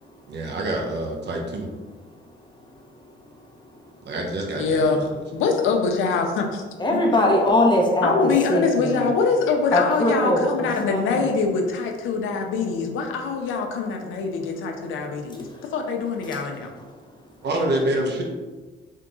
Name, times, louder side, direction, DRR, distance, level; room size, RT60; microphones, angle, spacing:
voice 1, 0.3-1.7 4.0-4.8 17.4-18.2, right 1 dB, 60° right, 1 dB, 1.0 m, -26 dB
voice 2, 4.6-5.1 5.3-6.6 6.9-7.0 8.0-16.7, left 4 dB, 85° left, 3 dB, 0.7 m, -24 dB
voice 3, 6.8-9.1 9.7-11.3, left 1 dB, 25° left, 0 dB, 1.0 m, -21 dB
3.7 x 3.7 x 3.8 m, 1.3 s
cardioid pair, 90°, 20 cm